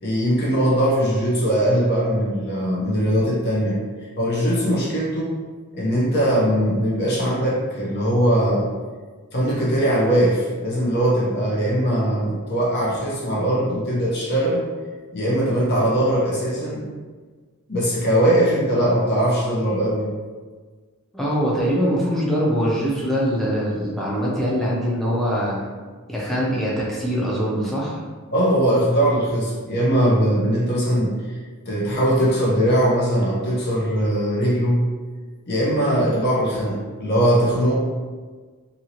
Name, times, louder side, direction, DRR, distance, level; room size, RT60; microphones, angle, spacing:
voice 1, 0.0-3.8 4.2-5.4 5.7-8.7 9.3-14.6 15.1-16.8 17.7-20.1 28.3-31.1 31.7-34.8 35.5-37.7, equal, 45° left, -5 dB, 0.9 m, -20 dB
voice 2, 21.1-25.6 26.1-28.0, equal, ahead, -6 dB, 0.6 m, -23 dB
2.7 x 2.7 x 2.9 m, 1.5 s
head